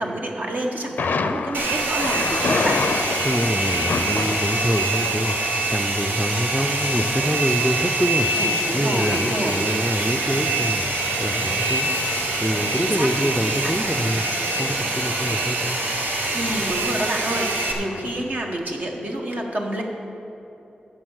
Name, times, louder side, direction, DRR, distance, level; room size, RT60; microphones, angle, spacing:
voice 1, 0.0-2.8 8.4-9.6 12.7-13.1 16.3-19.8, right 1 dB, 60° right, 0 dB, 1.5 m, -28 dB
Thunder, 1.0-18.4, left 4 dB, 75° left, 0.5 m, -32 dB
Domestic sounds home sounds, 1.5-17.7, right 2 dB, 80° right, 1.2 m, -25 dB
voice 2, 3.2-8.3 8.7-11.9 12.4-15.8, equal, ahead, 5 dB, 0.5 m, -25 dB
10.5 x 7.1 x 6.4 m, 2.9 s
wide cardioid pair, 70°, 3 cm